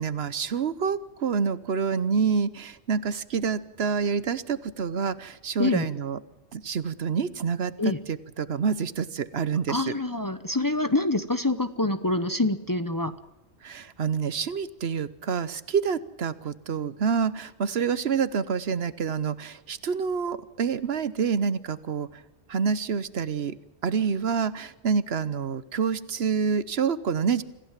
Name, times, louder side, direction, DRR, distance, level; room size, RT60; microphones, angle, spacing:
voice 1, 0.0-6.2 6.5-9.9 13.6-22.1 22.5-23.5 23.8-27.4, right 6 dB, 65° right, 16 dB, 1.1 m, -27 dB
voice 2, 9.7-13.1, left 2 dB, 20° left, 10 dB, 0.8 m, -26 dB
26.0 x 15.5 x 7.4 m, 1.0 s
omnidirectional pair, 1.2 m